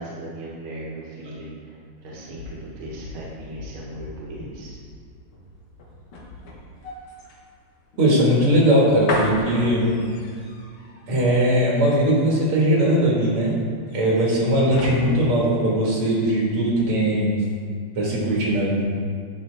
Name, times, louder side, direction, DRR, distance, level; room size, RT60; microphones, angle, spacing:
voice 1, 0.0-4.8, right 1 dB, 70° right, -6 dB, 2.0 m, -37 dB
sound 1, 2.0-16.3 16.7-16.9, left 1 dB, 90° left, 2.1 m, -36 dB
voice 2, 8.0-9.9 11.1-17.4 18.0-18.8, right 1 dB, 85° right, -4 dB, 2.6 m, -20 dB
9.3 x 6.0 x 3.4 m, 2.1 s
omnidirectional pair, 2.4 m